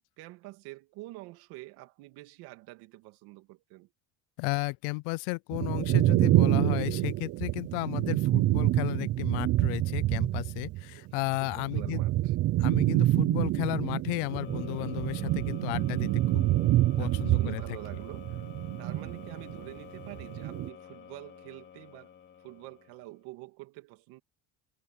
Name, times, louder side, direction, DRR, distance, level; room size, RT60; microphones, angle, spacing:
voice 1, 0.0-3.9 11.1-12.3 17.0-18.4 18.8-22.1 22.4-24.2, right 20 dB, 75° right, 2.8 m, -47 dB
voice 2, 4.4-12.0 12.6-16.5 17.0-17.8, left 26 dB, 90° left, 0.6 m, -34 dB
sound 1, 5.5-10.8 11.1-19.7 20.0-20.7, right 15 dB, 40° right, 0.6 m, -27 dB
sound 2, 14.3-23.2, left 8 dB, 30° left, 3.2 m, -49 dB
cardioid pair, 170°, 38 cm